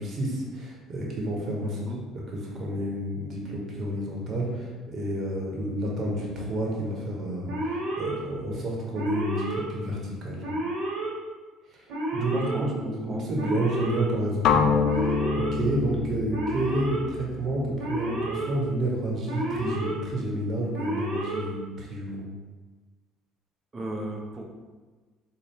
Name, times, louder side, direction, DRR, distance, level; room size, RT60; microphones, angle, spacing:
voice 1, 0.0-1.8 2.1-10.4 11.7-11.9 12.1-22.2, right 1 dB, 45° right, -2 dB, 1.1 m, -30 dB
voice 2, 1.6-2.0 12.3-13.6 23.7-24.5, right 1 dB, 30° right, 0 dB, 0.8 m, -35 dB
Alarm, 7.5-8.1 8.9-9.6 10.4-11.1 11.9-12.6 13.4-14.0 14.8-15.5 16.3-17.0 17.8-18.5 19.3-19.9 20.7-21.4, right 1 dB, 75° right, 1.0 m, -30 dB
sound 1, 14.4-18.4, left 5 dB, 65° left, 0.3 m, -27 dB
4.0 x 2.3 x 3.5 m, 1.4 s
supercardioid pair, 80°, 0 cm